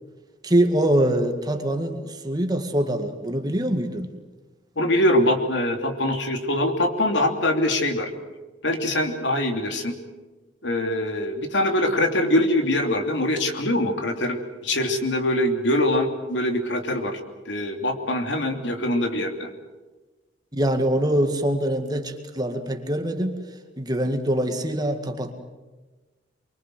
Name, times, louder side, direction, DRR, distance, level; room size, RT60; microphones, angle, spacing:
voice 1, 0.4-4.1 20.5-23.3 23.8-25.3, right 1 dB, 20° right, 5 dB, 2.1 m, -24 dB
voice 2, 4.8-8.1 8.6-9.9 10.6-14.4 14.6-17.2 17.5-19.5, left 1 dB, 75° left, 5 dB, 3.1 m, -23 dB
25.0 x 23.5 x 7.8 m, 1.2 s
head